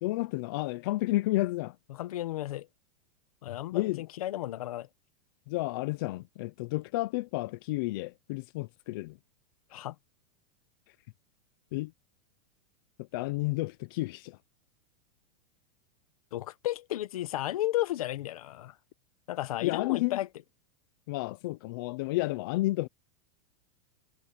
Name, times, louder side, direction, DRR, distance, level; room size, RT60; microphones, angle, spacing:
voice 1, 0.0-1.8 3.7-4.0 5.5-9.2 11.7-11.9 13.1-14.4 19.6-20.2 21.1-22.9, left 19 dB, 35° left, 0.4 m, -31 dB
voice 2, 1.9-2.7 3.4-4.9 9.7-9.9 16.3-18.8 19.3-20.3, left 14 dB, 70° left, 1.4 m, -33 dB
supercardioid pair, 175°, 19 cm